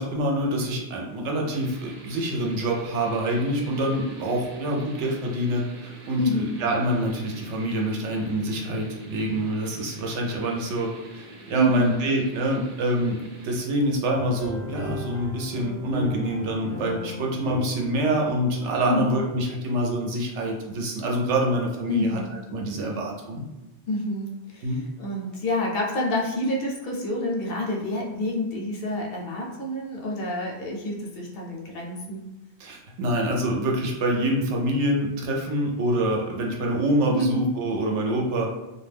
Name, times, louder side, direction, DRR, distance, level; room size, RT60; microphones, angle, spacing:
voice 1, 0.0-10.9 11.1-22.2 22.5-23.4 24.6-24.8 32.6-38.5, right 1 dB, 85° right, 0 dB, 0.9 m, -26 dB
sound 1, 1.5-13.6, right 1 dB, 55° right, 0.6 m, -46 dB
voice 2, 6.2-6.5 11.5-12.0 18.8-19.1 21.9-22.3 23.9-32.2 37.1-37.5, left 1 dB, 65° left, -1 dB, 0.7 m, -28 dB
sound 2, 14.2-19.8, left 1 dB, 5° left, 0.5 m, -37 dB
2.2 x 2.2 x 3.3 m, 1.0 s
omnidirectional pair, 1.2 m